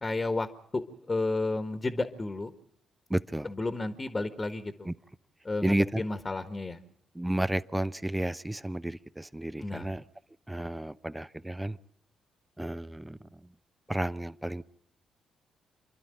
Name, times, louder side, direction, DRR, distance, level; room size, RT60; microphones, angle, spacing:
voice 1, 0.0-0.5 0.7-2.5 3.4-4.9 5.5-6.8 9.6-9.9, left 2 dB, 30° left, 1.6 m, -32 dB
voice 2, 3.1-3.5 4.8-4.9 5.6-6.0 7.1-10.0 10.5-11.8 12.6-13.4 13.9-14.6, right 1 dB, 10° right, 0.8 m, -32 dB
27.5 x 12.0 x 9.1 m
hypercardioid pair, 45°, 0 cm